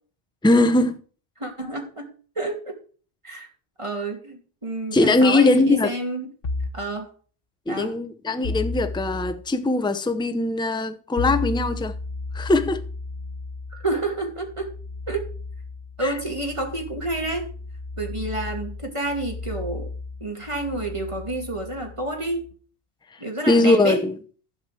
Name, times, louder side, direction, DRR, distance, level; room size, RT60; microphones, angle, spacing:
voice 1, 0.4-1.0 4.9-5.9 7.7-11.9 12.3-12.8 16.0-16.1 23.5-24.2, left 2 dB, 5° left, 0.7 m, -20 dB
voice 2, 1.4-2.8 3.2-3.5 3.8-6.3 6.7-7.1 7.7-8.0 13.7-14.7 15.1-15.3 16.0-17.5 18.0-19.9 20.2-22.4 23.2-24.0, right 2 dB, 30° right, 2.6 m, -29 dB
sound 1, 6.4-6.9 8.4-9.4 11.2-22.5, left 3 dB, 60° left, 1.3 m, -34 dB
12.0 x 4.9 x 7.5 m
omnidirectional pair, 1.1 m